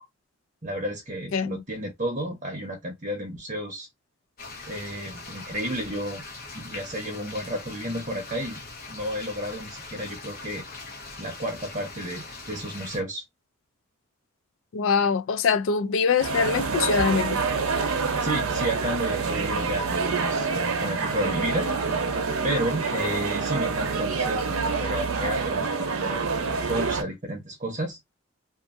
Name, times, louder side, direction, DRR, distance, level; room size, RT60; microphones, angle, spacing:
voice 1, 0.6-3.9 4.6-8.6 8.9-10.7 11.2-13.2 18.2-19.9 20.2-21.7 22.4-28.0, equal, 35° right, 0.8 m, -32 dB
voice 2, 1.3-1.6 14.7-17.4, left 6 dB, 70° left, 0.4 m, -23 dB
sound 1, 4.4-13.0, left 3 dB, 45° left, 0.8 m, -41 dB
sound 2, 16.2-27.0, right 4 dB, 90° right, 0.7 m, -27 dB
2.6 x 2.6 x 2.5 m
head